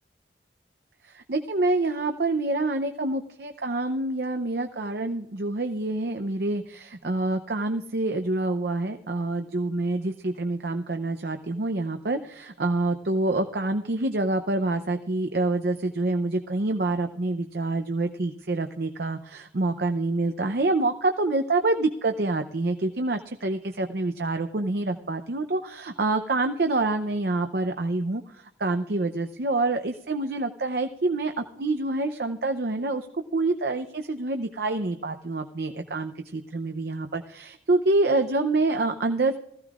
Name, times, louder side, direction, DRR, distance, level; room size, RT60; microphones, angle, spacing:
voice 1, 1.0-39.4, right 2 dB, 60° right, 6 dB, 0.6 m, -27 dB
20.0 x 14.5 x 2.4 m, 0.79 s
head